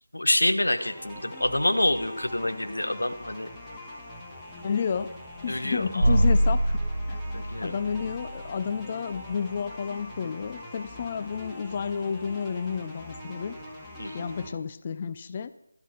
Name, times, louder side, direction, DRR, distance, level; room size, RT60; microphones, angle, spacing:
voice 1, 0.1-3.5 5.5-6.2 7.3-7.7 14.0-14.3, left 1 dB, 70° left, 9 dB, 1.1 m, -27 dB
sound 1, 0.8-14.5, left 1 dB, 5° left, 1.2 m, -43 dB
voice 2, 4.6-5.1 5.4-6.8 7.1-7.2 7.6-13.6 14.1-15.5, left 6 dB, 25° left, 13 dB, 0.4 m, -31 dB
sound 2, 6.0-8.4, equal, 75° right, 1.4 m, -24 dB
12.0 x 8.3 x 5.8 m, 0.84 s
figure-of-eight pair, 165°, 0 cm